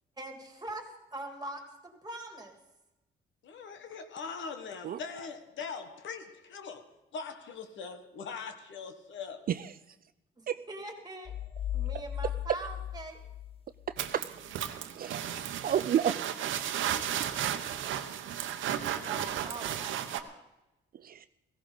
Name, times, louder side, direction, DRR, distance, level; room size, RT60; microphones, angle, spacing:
voice 1, 0.2-2.5 10.4-11.3 11.7-13.2 19.0-20.4, right 2 dB, 20° right, 4 dB, 2.5 m, -43 dB
voice 2, 3.4-6.8 7.1-9.4, left 5 dB, 70° left, 8 dB, 1.5 m, -41 dB
sound 1, 11.3-14.1, left 11 dB, 30° left, 0.5 m, -37 dB
voice 3, 13.9-14.3 15.0-15.2 15.6-16.2 21.0-21.3, right 9 dB, 50° right, 13 dB, 0.4 m, -30 dB
sound 2, 14.0-20.2, right 10 dB, 75° right, 0.9 m, -34 dB
16.5 x 15.5 x 4.0 m, 0.99 s
cardioid pair, 90°, 20 cm